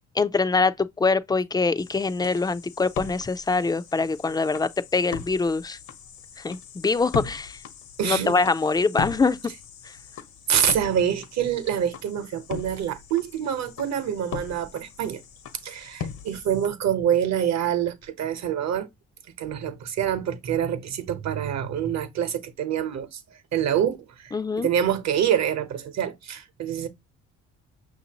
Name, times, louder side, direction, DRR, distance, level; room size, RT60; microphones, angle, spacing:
voice 1, 0.2-5.8 6.4-7.6 8.0-9.4 24.3-24.7, left 4 dB, 15° left, 0.3 m, -24 dB
sound 1, 1.8-16.7, left 6 dB, 75° left, 0.9 m, -39 dB
voice 2, 8.0-8.3 10.5-15.2 15.6-18.9 19.4-23.2 23.5-26.9, right 9 dB, 65° right, 1.0 m, -26 dB
5.9 x 2.6 x 2.9 m
cardioid pair, 90°, 30 cm